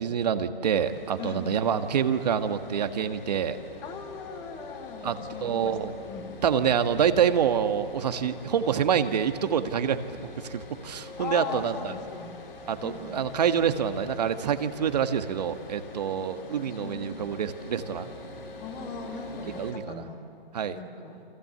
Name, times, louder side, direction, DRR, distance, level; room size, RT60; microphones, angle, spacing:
voice 1, 0.0-3.6 5.0-5.1 5.4-5.9 6.4-10.0 10.4-11.7 12.7-18.1 19.6-19.8 20.5-20.8, right 8 dB, 45° right, 8 dB, 1.6 m, -26 dB
sound 1, 0.8-19.7, left 3 dB, 70° left, 5.1 m, -44 dB
voice 2, 1.2-1.5 3.8-5.8 6.1-6.3 11.2-12.4 12.8-13.2 16.6-17.3 18.6-20.2 20.7-21.2, left 5 dB, 15° left, 4 dB, 2.6 m, -39 dB
29.0 x 25.5 x 7.9 m, 2.5 s
hypercardioid pair, 155°, 29 cm